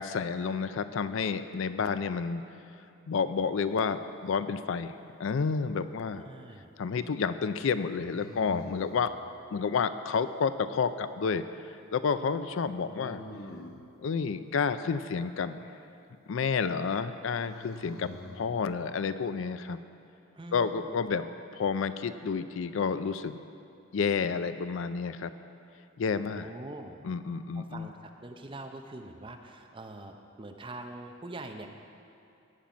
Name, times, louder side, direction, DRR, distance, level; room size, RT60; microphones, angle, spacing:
voice 1, 0.0-2.4 3.1-4.9 5.2-6.3 6.8-9.1 9.5-11.4 11.9-13.2 14.0-15.6 16.3-18.1 18.4-19.8 20.5-21.3 21.5-23.4 23.9-25.3 26.0-26.5 27.0-27.9, left 5 dB, 65° left, 12 dB, 0.4 m, -30 dB
sound 1, 5.3-6.0 8.1-9.0 12.8-13.9 17.2-18.5, left 2 dB, 85° left, 1.0 m, -45 dB
voice 2, 6.1-6.7 20.3-21.0 26.3-27.0 27.5-31.7, right 2 dB, 25° right, 4 dB, 0.6 m, -44 dB
17.5 x 5.9 x 5.1 m, 2.8 s
head